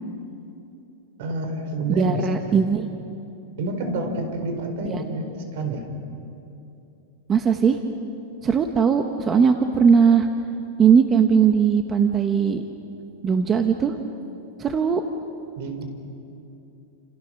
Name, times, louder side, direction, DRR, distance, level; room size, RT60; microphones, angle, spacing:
voice 1, 1.2-2.7 3.6-5.9 15.6-15.8, right 2 dB, 55° right, 6 dB, 4.3 m, -28 dB
voice 2, 2.0-2.9 4.8-5.0 7.3-7.8 8.4-10.3 10.8-12.6 13.2-14.0 14.6-15.0, right 6 dB, 15° right, 6 dB, 1.0 m, -19 dB
29.5 x 28.5 x 6.4 m, 2.8 s
supercardioid pair, 170°, 0 cm